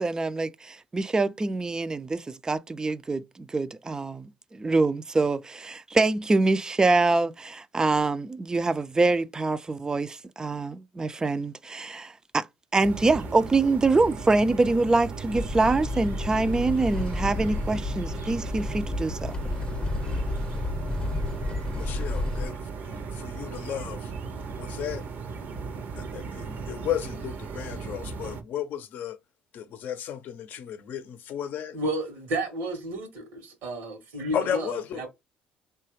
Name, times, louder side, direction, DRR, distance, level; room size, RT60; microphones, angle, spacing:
voice 1, 0.0-12.5 12.7-19.4, right 3 dB, 20° right, 0.3 m, -25 dB
sound 1, 12.8-28.4, right 5 dB, 65° right, 0.6 m, -37 dB
sound 2, 15.3-22.5, left 2 dB, 30° left, 0.7 m, -31 dB
voice 2, 21.7-24.1 24.5-25.1 26.0-29.2 29.5-31.8 34.3-35.1, left 9 dB, 65° left, 0.5 m, -34 dB
voice 3, 31.7-35.1, right 1 dB, 80° right, 1.0 m, -32 dB
3.1 x 2.2 x 3.0 m
supercardioid pair, 70°, 3 cm